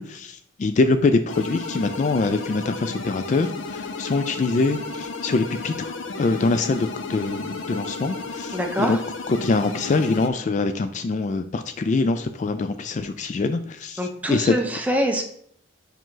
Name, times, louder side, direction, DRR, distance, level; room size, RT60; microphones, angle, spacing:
voice 1, 0.0-5.9 6.2-9.0 9.3-14.6, left 3 dB, 40° left, 10 dB, 0.3 m, -24 dB
sound 1, 1.3-10.3, left 3 dB, 80° left, 0.7 m, -33 dB
voice 2, 8.5-9.0 14.0-15.2, equal, 10° right, 3 dB, 0.7 m, -24 dB
5.2 x 5.0 x 3.8 m, 0.66 s
head